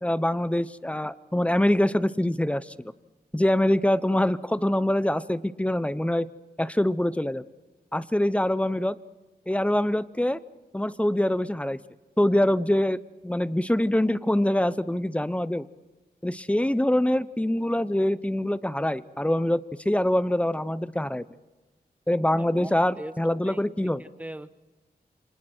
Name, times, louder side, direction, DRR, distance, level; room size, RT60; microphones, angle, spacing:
voice 1, 0.0-2.9 3.3-6.3 6.6-7.4 7.9-9.0 9.5-10.4 10.7-11.8 12.2-13.0 13.2-15.7 16.2-21.2 22.1-24.0, left 1 dB, 5° left, 15 dB, 0.8 m, -24 dB
voice 2, 22.4-23.1 23.4-24.5, right 1 dB, 10° right, 12 dB, 1.1 m, -41 dB
29.0 x 25.5 x 4.5 m, 1.2 s
wide cardioid pair, 70°, 17 cm